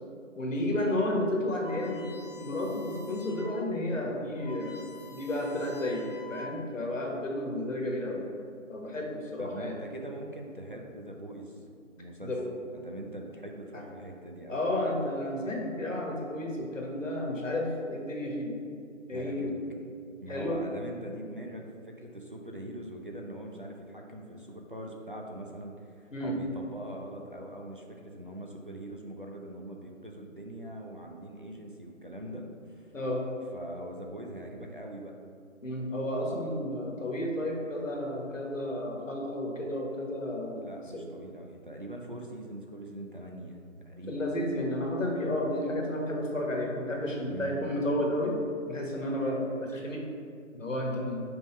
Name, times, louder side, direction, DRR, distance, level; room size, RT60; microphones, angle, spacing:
voice 1, 0.3-8.2 8.7-9.8 12.2-12.4 13.7-13.8 14.5-18.5 19.1-19.5 20.3-20.6 26.1-26.4 32.9-33.2 35.6-40.6 40.9-41.0 44.1-48.3 48.7-50.0 50.5-51.2, left 1 dB, 70° left, -1 dB, 1.5 m, -32 dB
sound 1, 1.6-3.6 4.0-4.1 4.3-6.8, left 4 dB, 30° left, 1.4 m, -48 dB
voice 2, 9.4-11.6 12.0-12.3 12.7-14.6 19.1-19.6 20.2-32.9 33.5-35.1 40.5-43.6 43.9-44.3 47.2-47.5, right 1 dB, 40° right, 0 dB, 0.5 m, -42 dB
5.8 x 3.6 x 5.5 m, 2.4 s
figure-of-eight pair, 175°, 40 cm